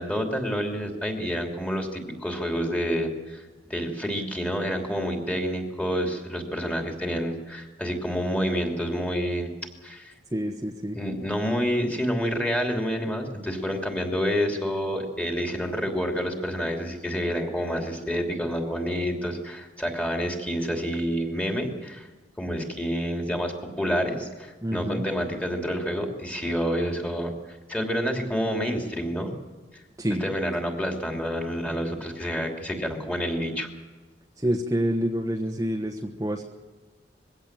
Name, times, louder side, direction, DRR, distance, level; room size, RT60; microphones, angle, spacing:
voice 1, 0.0-9.5 9.8-10.1 10.9-22.1 22.4-27.3 27.7-29.3 29.7-29.8 30.2-33.7, equal, 10° left, 2 dB, 3.0 m, -28 dB
voice 2, 10.3-11.0 24.6-25.0 30.0-30.2 34.4-36.4, equal, 20° right, 0 dB, 1.2 m, -27 dB
22.0 x 16.5 x 7.5 m, 1.3 s
head